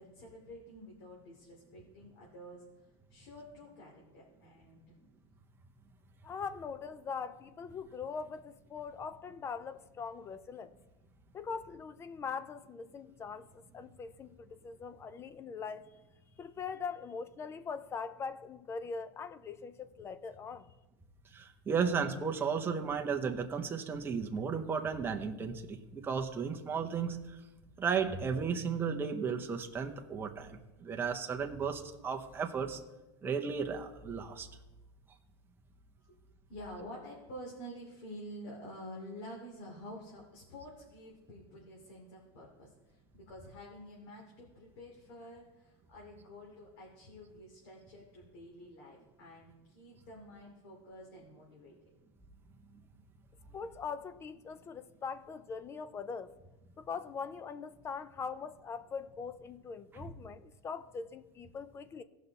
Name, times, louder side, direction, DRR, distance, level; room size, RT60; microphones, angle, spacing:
voice 1, 0.0-2.6 3.1-4.9 36.1-36.2 36.5-51.7, equal, 60° left, 2.8 m, -49 dB
voice 2, 6.2-10.8 11.3-15.9 16.4-20.7 53.5-56.3 56.8-62.0, left 5 dB, 20° left, 0.4 m, -42 dB
voice 3, 21.3-27.4 27.8-32.8 33.2-34.5, right 6 dB, 15° right, 0.8 m, -34 dB
16.5 x 5.6 x 4.1 m
supercardioid pair, 145°, 14 cm